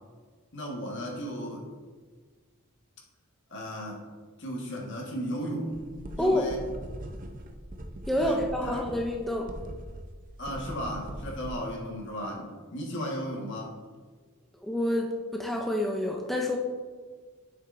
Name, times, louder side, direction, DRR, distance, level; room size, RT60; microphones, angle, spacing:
voice 1, 0.5-1.7 3.5-4.0 4.4-5.8 6.1-6.6 8.2-8.8 10.4-13.8, equal, 55° left, -1 dB, 1.5 m, -35 dB
sound 1, 5.7-11.5, right 1 dB, 40° right, 0.6 m, -41 dB
voice 2, 8.1-9.5 14.6-16.6, left 1 dB, ahead, 0 dB, 0.5 m, -28 dB
9.2 x 7.4 x 2.6 m, 1.5 s
head